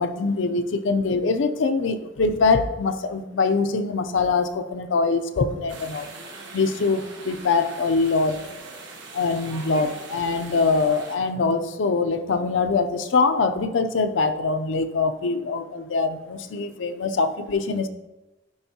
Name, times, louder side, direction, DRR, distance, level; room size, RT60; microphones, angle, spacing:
voice 1, 0.0-6.1 6.5-8.4 9.1-17.9, left 4 dB, 85° left, 8 dB, 0.5 m, -23 dB
sound 1, 5.7-11.2, right 3 dB, 80° right, 1.2 m, -41 dB
10.5 x 3.5 x 2.8 m, 1.1 s
head